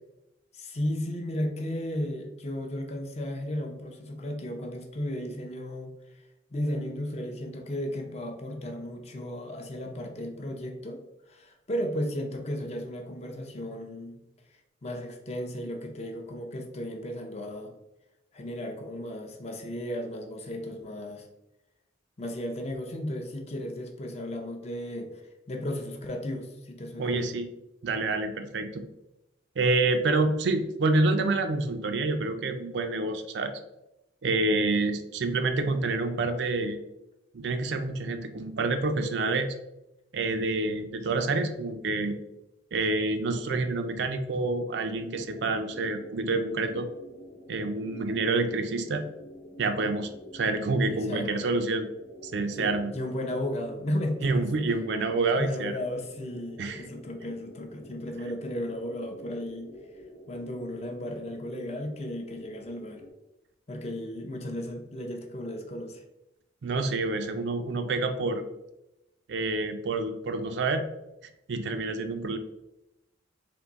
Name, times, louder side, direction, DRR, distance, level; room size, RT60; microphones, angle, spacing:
voice 1, 0.5-6.2 6.5-14.2 14.8-17.7 18.3-21.3 22.2-27.3 50.9-51.4 52.6-54.5 55.4-59.8 60.3-63.0 63.7-66.0, left 1 dB, 35° left, 3 dB, 0.5 m, -35 dB
voice 2, 27.0-27.5 27.8-28.8 29.6-33.6 34.2-36.8 37.3-39.5 40.1-42.2 42.7-46.9 47.5-49.1 49.6-51.9 52.2-52.9 54.2-55.8 56.6-56.8 66.6-68.4 69.3-70.8 71.5-72.4, right 3 dB, 65° right, 7 dB, 0.4 m, -27 dB
sound 1, 45.0-63.1, equal, 60° left, 0.8 m, -48 dB
3.6 x 2.6 x 3.9 m, 0.91 s
head